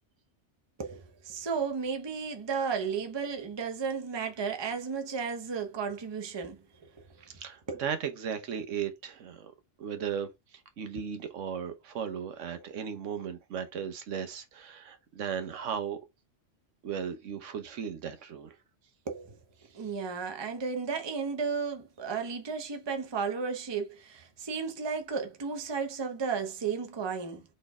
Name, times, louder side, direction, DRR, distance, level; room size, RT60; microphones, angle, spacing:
voice 1, 0.8-6.6 6.9-7.0 7.7-7.8 19.1-19.4 19.7-27.4, right 5 dB, 30° right, 0.6 m, -33 dB
voice 2, 7.3-9.5 9.8-16.0 16.8-18.6, right 7 dB, 85° right, 1.1 m, -36 dB
4.2 x 3.2 x 3.4 m
omnidirectional pair, 1.2 m